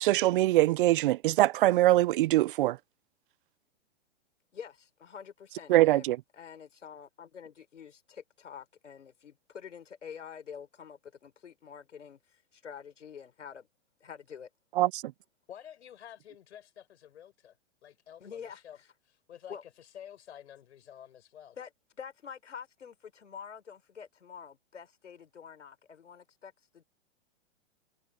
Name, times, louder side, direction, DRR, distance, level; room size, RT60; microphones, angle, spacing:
voice 1, 0.0-2.8 5.7-6.2 14.8-15.0, right 16 dB, 50° right, 0.5 m, -23 dB
voice 2, 4.5-13.7 14.0-14.5 18.2-18.6 19.5-19.6 21.6-21.7 22.0-26.8, left 7 dB, 85° left, 4.2 m, -47 dB
voice 3, 15.5-17.6 17.8-18.8 19.0-21.6, left 10 dB, 70° left, 5.8 m, -50 dB
hypercardioid pair, 130°, 35 cm